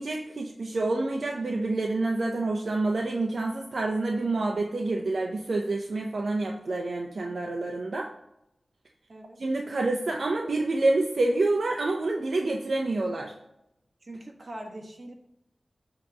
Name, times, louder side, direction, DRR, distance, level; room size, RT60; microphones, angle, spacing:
voice 1, 0.0-8.1 9.4-13.3, right 2 dB, 80° right, 2 dB, 0.6 m, -27 dB
voice 2, 14.0-15.1, right 1 dB, 55° right, 1 dB, 1.3 m, -42 dB
7.6 x 3.0 x 6.1 m, 0.82 s
wide cardioid pair, 60°, 0 cm